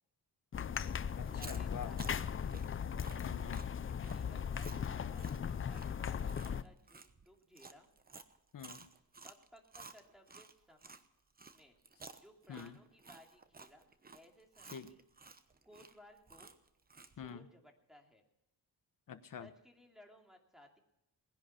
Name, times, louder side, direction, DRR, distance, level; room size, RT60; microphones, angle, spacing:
sound 1, 0.5-6.6, left 7 dB, 35° left, 0.5 m, -38 dB
voice 1, 0.7-2.6 4.1-7.9 9.2-11.0 11.5-11.8 12.1-13.8 14.1-15.0 15.6-16.5 17.2-18.2 19.4-20.8, left 1 dB, ahead, 2 dB, 2.7 m, -61 dB
Chewing mastication, 1.2-11.0 11.4-17.3, right 4 dB, 25° right, 1.0 m, -55 dB
voice 2, 1.4-1.9 3.2-3.7 8.5-8.9 12.5-12.8 14.7-14.9 17.2-17.5 19.1-19.5, left 7 dB, 55° left, 10 dB, 1.2 m, -46 dB
19.5 x 10.5 x 5.9 m, 0.85 s
cardioid pair, 120°, 38 cm